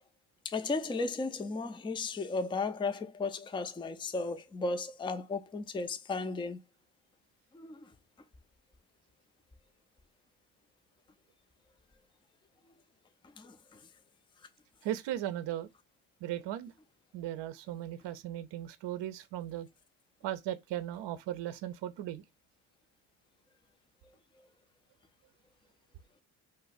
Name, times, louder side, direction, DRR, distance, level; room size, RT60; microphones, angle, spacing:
voice 1, 0.4-6.6 7.5-7.8 13.4-13.6, left 3 dB, 10° left, 0.4 m, -35 dB
voice 2, 14.8-15.7 16.2-16.7 17.1-19.7 20.2-22.2, right 12 dB, 60° right, 0.6 m, -37 dB
2.5 x 2.2 x 4.0 m
supercardioid pair, 55°, 50 cm